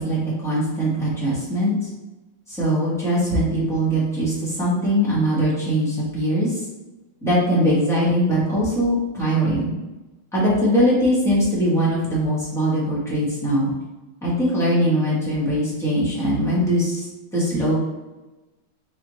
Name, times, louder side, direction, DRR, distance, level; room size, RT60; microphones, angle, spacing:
voice 1, 0.0-1.7 2.5-6.6 7.2-9.7 10.3-13.7 14.2-17.0 17.3-17.7, equal, 5° left, -8 dB, 0.6 m, -21 dB
4.1 x 2.7 x 3.0 m, 1.1 s
omnidirectional pair, 2.3 m